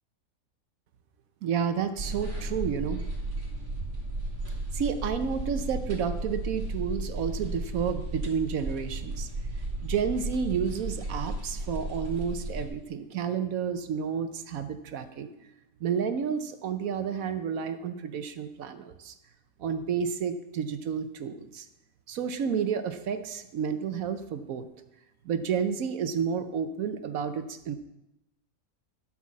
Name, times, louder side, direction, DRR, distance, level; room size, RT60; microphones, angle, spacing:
voice 1, 1.4-3.0 4.7-9.3 9.8-15.5 15.8-19.1 19.6-21.7 22.1-24.7 25.2-27.8, right 7 dB, 75° right, 9 dB, 1.2 m, -31 dB
sound 1, 2.0-12.7, right 2 dB, 35° right, 3.2 m, -34 dB
12.0 x 6.2 x 7.5 m, 0.90 s
omnidirectional pair, 1.5 m